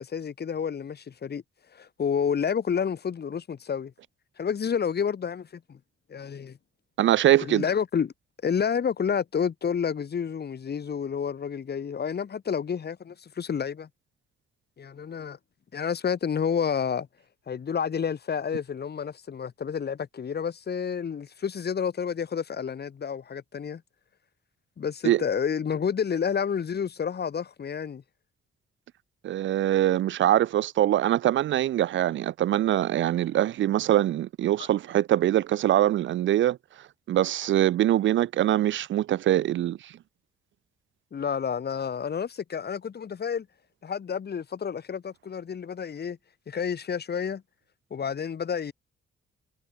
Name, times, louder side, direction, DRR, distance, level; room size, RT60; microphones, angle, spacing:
voice 1, 0.0-1.4 1.7-3.9 4.4-5.8 6.1-6.6 7.4-8.1 8.4-13.9 14.8-15.4 15.7-17.1 17.5-23.8 24.8-28.0 34.6-34.7 41.1-43.5 43.8-46.2 46.5-47.4 47.9-48.7, left 7 dB, 50° left, 6.6 m, -30 dB
voice 2, 7.0-7.6 25.0-25.2 29.2-36.6 37.1-39.9, right 12 dB, 65° right, 0.5 m, -23 dB
cardioid pair, 110°, 21 cm